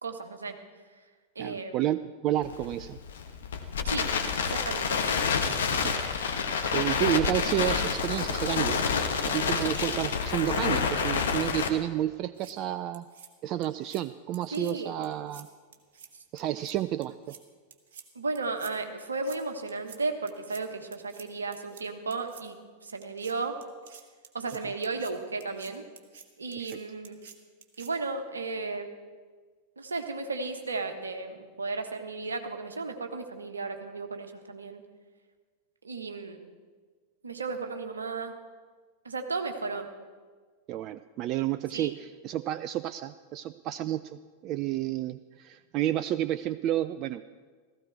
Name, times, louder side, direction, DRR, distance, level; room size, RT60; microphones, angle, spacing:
voice 1, 0.0-0.6 1.3-1.8 3.8-5.0 14.5-15.0 18.1-23.6 24.3-25.9 26.4-27.2 27.8-28.9 29.8-34.8 35.8-36.4 37.2-38.4 39.0-39.9 41.7-41.9, right 3 dB, 75° right, 6 dB, 1.3 m, -34 dB
voice 2, 1.4-3.0 5.8-6.4 6.6-8.8 9.2-13.0 13.4-15.5 16.3-17.4 26.6-26.8 40.7-47.3, right 12 dB, 35° right, 13 dB, 0.3 m, -31 dB
Crackle, 2.4-11.7, left 6 dB, 65° left, 1.2 m, -28 dB
sound 1, 12.1-12.5 12.9-13.3 13.6-14.0 14.3-14.7 15.0-15.4 15.7-16.1 16.4-16.7 17.0-17.4 17.7-18.0 18.3-18.7 19.0-19.4 19.7-20.0 20.3-20.6 20.9-21.2 21.5-21.8 22.1-22.4 23.0-23.3 23.6-25.1 25.4-25.7 26.0-26.2 26.5-26.8 27.0-27.3 27.6-27.9, right 7 dB, 55° right, 1.5 m, -49 dB
16.0 x 14.5 x 4.6 m, 1.5 s
figure-of-eight pair, 90°, 0 cm